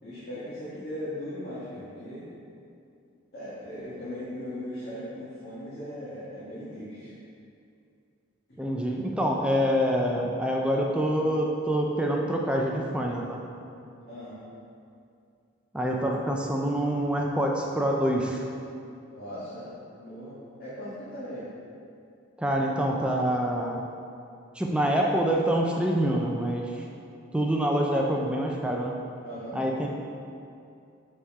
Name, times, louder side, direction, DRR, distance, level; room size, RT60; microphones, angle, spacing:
voice 1, 0.0-2.3 3.3-7.1 8.5-8.6 14.1-14.4 19.1-21.5 29.2-29.6, equal, 50° left, -11 dB, 1.5 m, -38 dB
voice 2, 8.6-13.4 15.7-18.4 22.4-23.8 24.5-26.8 27.3-28.9 29.5-29.9, equal, 5° right, -1 dB, 0.4 m, -26 dB
6.8 x 4.3 x 4.6 m, 2.5 s
head